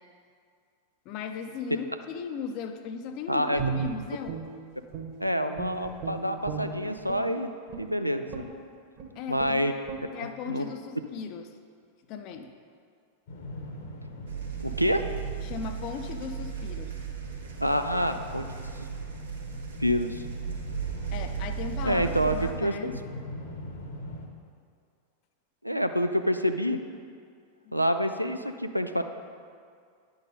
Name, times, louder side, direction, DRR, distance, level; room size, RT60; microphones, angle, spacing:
voice 1, 1.1-4.5 9.1-9.7 10.1-11.5 12.1-12.5 15.4-17.0 21.1-23.0 27.6-27.7, left 6 dB, 40° left, 7 dB, 0.6 m, -37 dB
voice 2, 3.3-3.6 5.2-7.5 7.8-8.5 9.3-9.7 10.5-10.6 14.6-15.0 17.6-18.5 19.8-20.2 21.8-22.9 25.6-26.8 27.7-29.0, equal, 90° right, 7 dB, 0.4 m, -27 dB
Guitar, 3.6-5.3 5.6-7.3 7.7-7.9 8.3-8.6 9.0-9.1 9.4-9.6 9.9-10.1, right 6 dB, 40° right, 1.4 m, -35 dB
sound 1, 13.3-24.3, left 1 dB, 55° left, 1.1 m, -42 dB
sound 2, 14.3-22.5, right 9 dB, 70° right, 1.1 m, -36 dB
9.8 x 4.0 x 5.2 m, 2.2 s
figure-of-eight pair, 90°, 0 cm